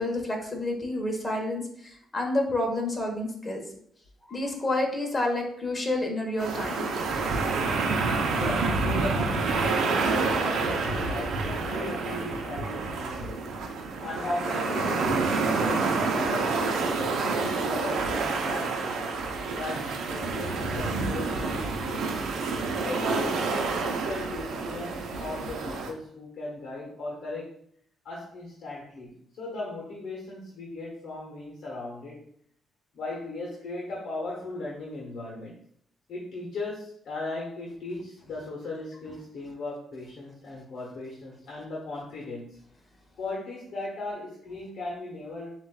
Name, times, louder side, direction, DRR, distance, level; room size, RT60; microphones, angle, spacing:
voice 1, 0.0-3.6 4.3-6.8, left 1 dB, 25° left, 1 dB, 1.2 m, -29 dB
sound 1, 6.4-25.9, right 4 dB, 75° right, 0.6 m, -28 dB
voice 2, 8.3-13.4 13.9-22.2 22.8-27.5 28.0-32.2 32.9-35.6 36.1-42.6 43.2-45.5, left 2 dB, 65° left, -3 dB, 0.9 m, -37 dB
7.3 x 2.5 x 2.3 m, 0.66 s
cardioid pair, 90°, 0 cm